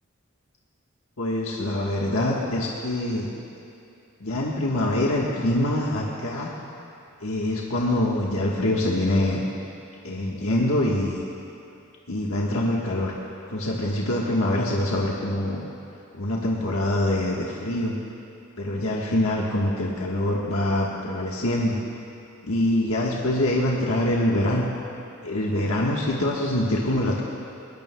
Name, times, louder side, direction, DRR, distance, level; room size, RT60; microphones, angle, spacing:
voice 1, 1.2-3.3 4.2-6.5 7.2-9.4 10.0-11.2 12.1-13.1 13.5-15.6 16.1-18.0 18.6-21.8 22.5-24.7 25.2-27.2, left 1 dB, 90° left, -3 dB, 1.3 m, -24 dB
20.5 x 19.0 x 2.2 m, 2.7 s
head